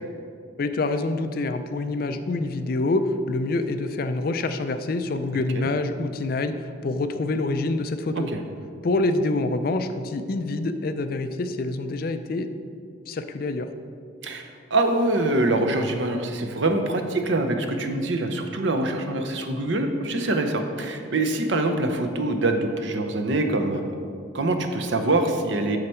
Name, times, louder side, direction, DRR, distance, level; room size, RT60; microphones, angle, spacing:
voice 1, 0.6-8.3 8.8-12.5 13.1-13.7, left 2 dB, 45° left, 9 dB, 0.4 m, -26 dB
voice 2, 14.2-23.9 24.3-25.8, right 2 dB, 65° right, 6 dB, 0.7 m, -24 dB
7.8 x 6.6 x 4.4 m, 2.4 s
head